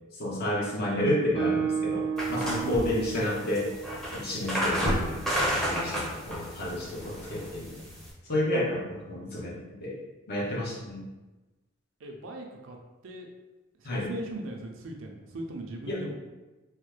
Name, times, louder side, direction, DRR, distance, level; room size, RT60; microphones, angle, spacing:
voice 1, 0.1-3.7 4.1-5.3 5.7-7.9 8.3-10.0 10.3-11.1 13.8-14.1 15.9-16.0, left 1 dB, 50° left, -4 dB, 0.8 m, -30 dB
Guitar, 1.3-5.0, right 6 dB, 75° left, 1.3 m, -33 dB
sound 1, 2.2-8.1, equal, ahead, 0.6 m, -31 dB
voice 2, 2.6-3.0 12.0-12.8 13.0-13.3 13.7-16.1, right 2 dB, 70° right, 2 dB, 0.5 m, -38 dB
3.1 x 2.1 x 3.1 m, 1.1 s
head